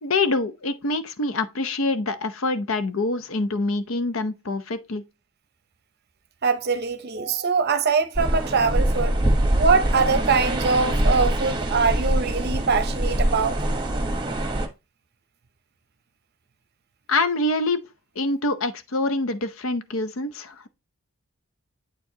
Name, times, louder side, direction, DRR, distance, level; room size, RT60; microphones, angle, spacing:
voice 1, 0.0-5.0 17.1-17.8 18.2-20.7, left 2 dB, 60° left, 0.7 m, -25 dB
voice 2, 6.4-9.2 9.6-13.6, right 5 dB, 45° right, 0.7 m, -23 dB
sound 1, 8.2-14.7, right 1 dB, 20° right, 1.0 m, -23 dB
8.3 x 4.6 x 2.8 m
head